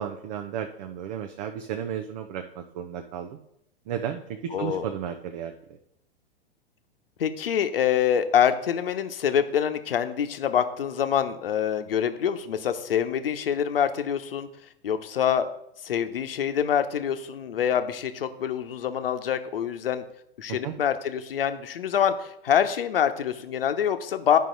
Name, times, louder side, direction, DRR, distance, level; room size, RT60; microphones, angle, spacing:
voice 1, 0.0-3.4 3.9-5.5 20.5-20.7, right 9 dB, 45° right, 6 dB, 0.7 m, -33 dB
voice 2, 4.5-4.9 7.2-14.5 14.8-15.5 15.8-20.0 20.4-24.4, left 9 dB, 65° left, 10 dB, 0.9 m, -25 dB
10.5 x 5.5 x 3.9 m, 0.77 s
figure-of-eight pair, 100°, 30 cm